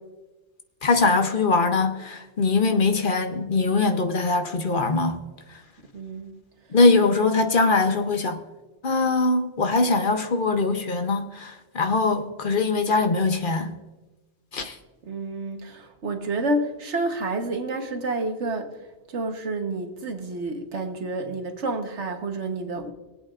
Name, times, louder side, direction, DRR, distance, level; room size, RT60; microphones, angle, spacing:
voice 1, 0.8-5.2 6.7-8.4 8.8-13.8 14.5-14.7, left 3 dB, 50° left, 0.9 m, -22 dB
voice 2, 5.9-6.4 15.0-22.9, right 2 dB, 80° right, 1.5 m, -29 dB
23.0 x 8.4 x 2.5 m
omnidirectional pair, 1.2 m